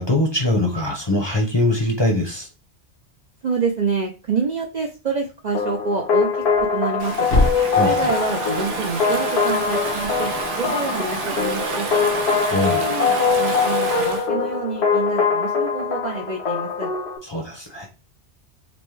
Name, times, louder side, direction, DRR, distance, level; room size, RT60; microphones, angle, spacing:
voice 1, 0.0-2.5 7.8-8.1 12.5-12.8 17.3-17.9, left 1 dB, 25° left, 0 dB, 0.7 m, -22 dB
voice 2, 3.4-7.3 7.8-10.3 10.6-11.9 12.6-13.1 13.4-16.9, right 4 dB, 50° right, 2 dB, 0.5 m, -27 dB
sound 1, 5.5-17.2, left 5 dB, 65° left, 1.0 m, -22 dB
Thump thud, 6.4-10.5, left 2 dB, 90° left, 1.2 m, -28 dB
Stream / Ocean, 7.0-14.3, right 4 dB, 85° right, 1.2 m, -29 dB
5.2 x 2.1 x 3.1 m, 0.29 s
omnidirectional pair, 1.2 m